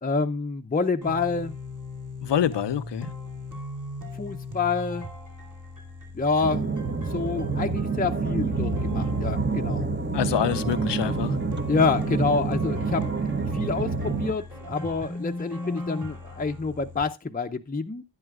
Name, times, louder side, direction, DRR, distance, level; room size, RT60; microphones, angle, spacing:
voice 1, 0.0-1.6 4.1-5.1 6.1-6.6 7.1-9.9 11.7-13.0 13.5-18.0, left 4 dB, 20° left, 0.6 m, -27 dB
sound 1, 1.0-17.0, left 2 dB, 45° right, 2.8 m, -38 dB
voice 2, 2.2-3.1 10.1-11.4, left 10 dB, 70° left, 0.6 m, -26 dB
sound 2, 6.4-14.3, right 4 dB, 25° right, 0.8 m, -28 dB
11.0 x 9.8 x 2.4 m
wide cardioid pair, 65°, 44 cm